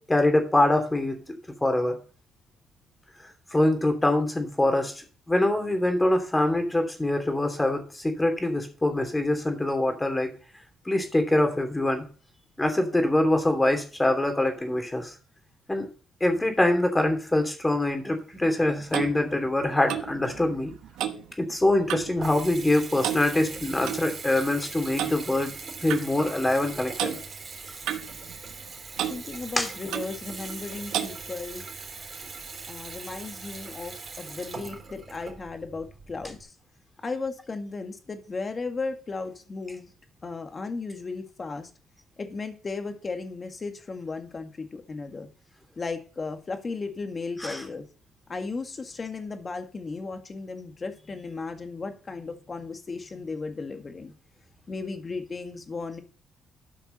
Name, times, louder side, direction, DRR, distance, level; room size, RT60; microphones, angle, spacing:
voice 1, 0.1-1.2 1.6-2.0 3.5-4.9 5.3-10.3 10.9-12.0 12.6-15.1 15.7-15.9 16.2-20.7 21.4-25.5 25.8-27.2 29.6-29.7 47.4-47.6, left 1 dB, 15° left, 5 dB, 3.0 m, -24 dB
Clock, 18.4-22.2 22.5-22.8 23.0-24.0 25.0-25.2 25.9-26.1 27.0-27.2 27.9-28.7 29.0-29.2 29.9-30.2 30.9-31.2, right 10 dB, 90° right, 1.0 m, -32 dB
Water tap faucet / Bathtub (filling or washing) / Trickle dribble, 21.6-36.4, right 4 dB, 45° right, 4.1 m, -41 dB
voice 2, 29.1-31.6 32.7-36.5 37.0-39.9 40.2-41.7 42.2-45.3 45.8-47.9 48.3-54.1 54.7-56.0, left 4 dB, 35° left, 6 dB, 1.9 m, -35 dB
13.0 x 5.9 x 5.5 m, 0.38 s
cardioid pair, 90°, 0 cm